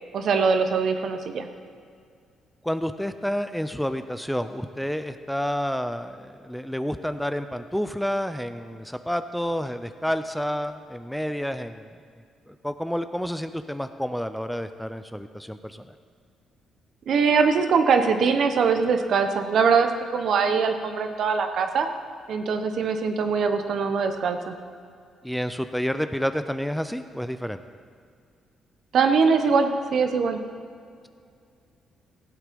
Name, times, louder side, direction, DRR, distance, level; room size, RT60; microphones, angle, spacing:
voice 1, 0.1-1.5 17.1-21.9 22.3-24.6 28.9-30.4, right 5 dB, 65° right, 7 dB, 1.0 m, -22 dB
voice 2, 2.6-11.9 12.5-15.9 25.2-27.6, equal, ahead, 10 dB, 0.5 m, -29 dB
16.0 x 8.2 x 5.3 m, 2.3 s
cardioid pair, 90°, 0 cm